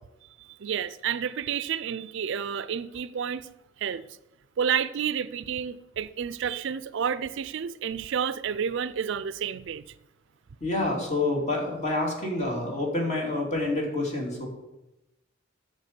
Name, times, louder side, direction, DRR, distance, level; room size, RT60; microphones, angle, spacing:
voice 1, 0.4-3.5 3.8-4.1 4.6-9.8, right 7 dB, 65° right, 0.4 m, -30 dB
voice 2, 10.6-14.5, left 2 dB, 35° left, 2.6 m, -28 dB
9.2 x 6.6 x 6.7 m
head